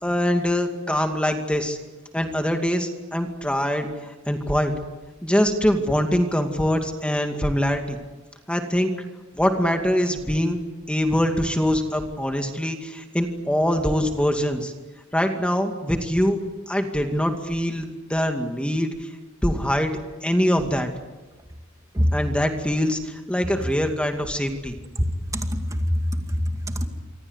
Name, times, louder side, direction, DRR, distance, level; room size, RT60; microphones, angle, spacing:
voice 1, 0.0-1.8 2.1-3.9 4.3-4.7 5.2-8.0 8.5-8.9 9.4-10.6 10.9-14.7 15.1-16.4 16.7-19.1 19.4-20.9 22.1-24.8, equal, 5° left, 2.3 m, -23 dB
voice 2, 25.3-26.9, equal, 15° right, 2.2 m, -24 dB
26.5 x 25.0 x 8.2 m
head